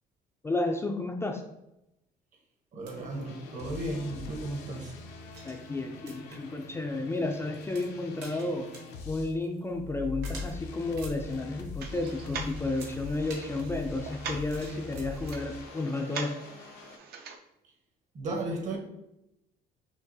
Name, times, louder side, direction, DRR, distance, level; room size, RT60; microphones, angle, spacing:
voice 1, 0.4-1.4 5.4-8.7 9.1-16.4, left 2 dB, 15° left, 0.3 m, -32 dB
voice 2, 2.7-4.9 18.1-18.8, right 2 dB, 45° right, 1.0 m, -34 dB
sound 1, 2.8-15.4, right 3 dB, 85° right, 1.2 m, -52 dB
sound 2, 2.9-9.3 9.7-17.0, left 4 dB, 90° left, 0.7 m, -43 dB
sound 3, 11.8-17.4, right 5 dB, 65° right, 0.6 m, -43 dB
5.8 x 2.4 x 2.7 m
cardioid pair, 110°, 17 cm